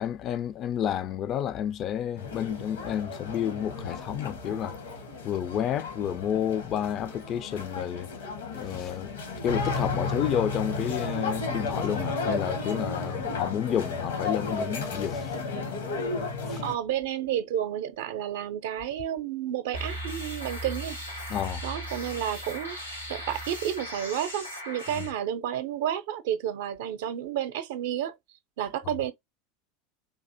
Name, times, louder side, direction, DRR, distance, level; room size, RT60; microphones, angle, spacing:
voice 1, 0.0-4.8 5.2-8.1 8.5-9.1 9.4-15.4 16.5-16.6 21.3-21.6, left 10 dB, 40° left, 0.4 m, -30 dB
sound 1, 2.2-16.7, left 3 dB, 70° left, 1.0 m, -33 dB
voice 2, 16.6-21.0 21.6-22.8 23.1-28.2 28.6-29.1, right 10 dB, 60° right, 0.5 m, -31 dB
sound 2, 19.7-25.1, equal, 90° left, 2.2 m, -37 dB
3.9 x 2.6 x 2.5 m
figure-of-eight pair, 80°, 0 cm